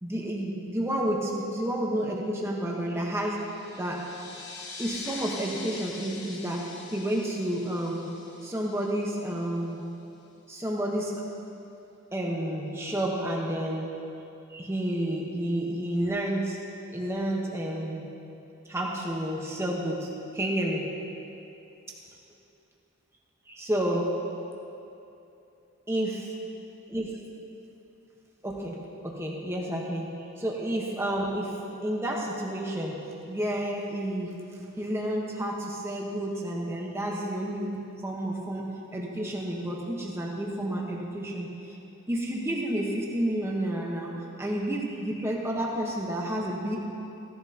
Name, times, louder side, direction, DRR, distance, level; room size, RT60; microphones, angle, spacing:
voice 1, 0.0-3.4 3.7-4.0 4.8-8.1 8.4-9.8 10.5-11.1 12.1-13.9 14.5-16.6 16.9-18.1 18.7-20.8 23.5-24.1 25.9-26.3 26.9-27.1 28.4-30.1 30.4-31.6 31.8-33.0 33.3-41.8 42.1-46.8, right 1 dB, 10° right, -2 dB, 1.1 m, -30 dB
sound 1, 3.2-9.5, left 3 dB, 50° left, 1.2 m, -43 dB
16.0 x 11.5 x 2.9 m, 2.8 s
head